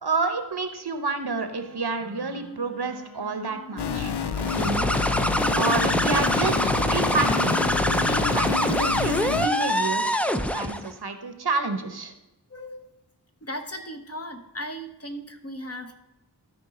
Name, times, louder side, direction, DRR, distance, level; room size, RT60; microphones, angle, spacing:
voice 1, 0.0-4.1 4.5-4.9 5.5-10.0 10.5-12.1, right 3 dB, 70° right, 8 dB, 0.9 m, -29 dB
Wind instrument woodwind instrument, 1.4-4.6 5.3-8.1, left 1 dB, 60° left, 1.7 m, -45 dB
sound 1, 3.8-9.5, left 7 dB, 75° left, 0.5 m, -29 dB
sound 2, 4.4-10.9, equal, 5° left, 0.4 m, -24 dB
voice 2, 12.5-12.8 13.4-16.0, equal, 35° left, 5 dB, 0.9 m, -38 dB
13.0 x 4.6 x 4.2 m, 0.95 s
wide cardioid pair, 40°, 41 cm